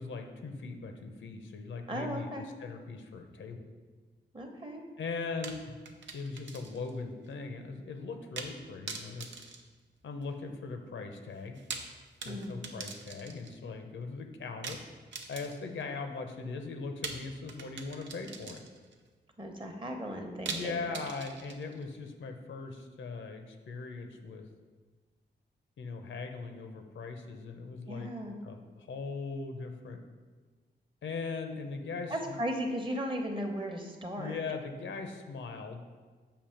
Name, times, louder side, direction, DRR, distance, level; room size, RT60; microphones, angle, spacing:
voice 1, 0.0-3.6 5.0-5.7 6.1-9.3 10.0-11.6 12.3-14.8 15.3-18.6 20.5-24.5 25.8-28.1 28.4-30.0 31.0-32.4 34.2-35.8, left 4 dB, 85° left, 5 dB, 0.7 m, -40 dB
voice 2, 1.9-2.5 4.3-4.8 12.2-12.6 19.4-20.9 27.9-28.4 32.1-34.4, equal, 25° right, 3 dB, 0.9 m, -36 dB
sound 1, 5.4-7.0 7.2-7.3 8.4-8.6 8.9-10.4 11.5-13.6 14.6-15.8 17.0-18.9 20.5-21.8, right 4 dB, 75° right, 0.6 m, -43 dB
6.8 x 2.8 x 5.7 m, 1.4 s
cardioid pair, 85°, 19 cm